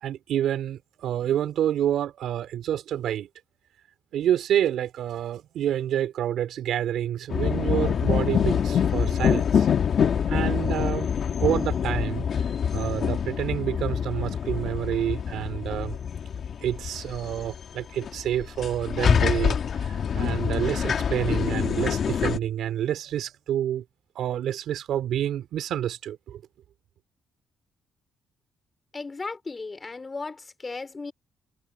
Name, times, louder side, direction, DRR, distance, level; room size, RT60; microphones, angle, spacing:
voice 1, 0.0-3.3 4.1-9.7 10.3-11.1 11.4-12.3 12.7-16.0 16.6-19.6 19.8-23.8 24.1-26.4, right 11 dB, 75° right, 2.8 m, -28 dB
sound 1, 7.3-22.4, left 7 dB, 50° left, 1.9 m, -25 dB
voice 2, 28.9-31.1, left 3 dB, 25° left, 3.0 m, -35 dB
cardioid pair, 125°, 0 cm